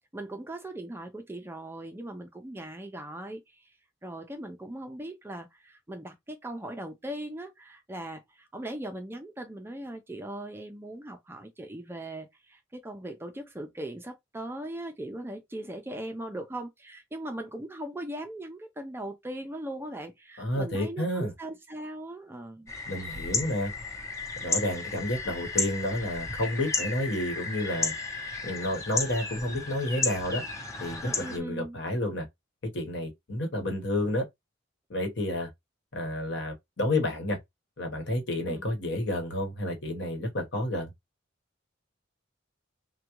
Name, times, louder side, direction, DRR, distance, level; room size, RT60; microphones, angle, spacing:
voice 1, 0.1-3.7 4.0-22.7 31.0-31.8 38.5-38.7, right 1 dB, 10° right, 0.4 m, -39 dB
voice 2, 20.4-21.3 22.9-23.7 24.4-27.9 28.4-30.4 30.8-32.3 32.7-34.2 34.9-35.5 35.9-37.4 37.8-40.9, left 1 dB, 65° left, 1.1 m, -30 dB
sound 1, 22.7-31.4, left 3 dB, 15° left, 0.7 m, -33 dB
3.6 x 2.2 x 2.9 m
head